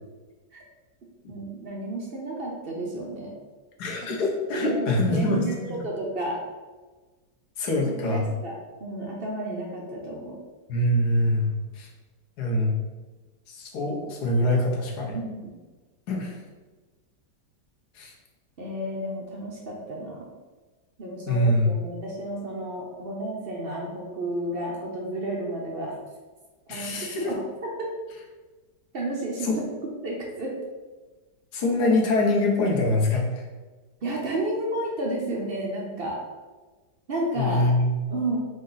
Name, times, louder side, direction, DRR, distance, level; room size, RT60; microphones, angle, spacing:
voice 1, 1.3-3.4 4.2-4.3 4.6-6.4 7.8-10.4 15.1-15.5 18.6-20.3 21.0-26.0 26.7-27.9 28.9-29.5 30.0-30.5 34.0-36.2 37.1-37.7 38.1-38.4, right 1 dB, 65° right, -2 dB, 0.5 m, -32 dB
voice 2, 3.8-5.7 7.6-8.3 10.7-11.9 12.4-12.7 13.5-15.2 16.1-16.4 17.9-18.1 21.3-21.7 26.7-27.3 29.4-29.6 31.5-33.4 37.4-37.9, left 1 dB, 65° left, 0 dB, 1.4 m, -24 dB
5.2 x 2.6 x 3.8 m, 1.3 s
omnidirectional pair, 1.9 m